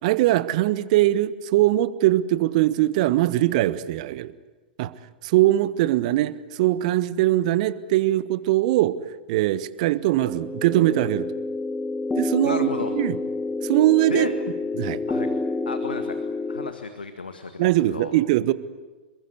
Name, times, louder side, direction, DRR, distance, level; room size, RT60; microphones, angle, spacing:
voice 1, 0.0-4.3 4.8-4.9 5.2-9.0 9.3-11.3 12.2-13.2 13.6-14.3 14.8-15.0 17.6-18.5, right 15 dB, 50° right, 15 dB, 1.3 m, -21 dB
sound 1, 10.1-16.7, left 2 dB, 10° left, 1.7 m, -28 dB
voice 2, 12.4-12.9 14.1-14.3 15.1-15.3 15.7-16.2 16.5-18.1, left 4 dB, 80° left, 8 dB, 1.9 m, -33 dB
27.5 x 22.5 x 8.1 m, 1.3 s
figure-of-eight pair, 100°, 5 cm